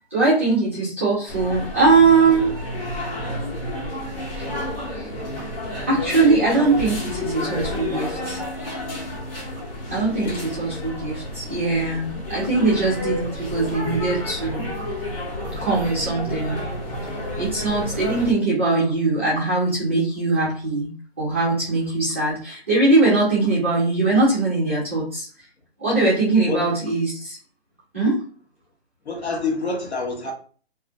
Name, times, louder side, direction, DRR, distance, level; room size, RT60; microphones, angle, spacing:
voice 1, 0.1-2.5 4.4-4.5 4.9-5.1 5.9-8.4 9.9-14.7 15.5-16.6 17.4-20.9 21.2-25.3 25.8-27.4 27.9-28.2, right 3 dB, 15° right, 0.5 m, -21 dB
sound 1, 1.3-18.3, left 1 dB, 55° left, 1.3 m, -30 dB
voice 2, 29.0-30.3, left 3 dB, 80° left, 1.1 m, -27 dB
2.4 x 2.0 x 3.7 m
hypercardioid pair, 165°, 33 cm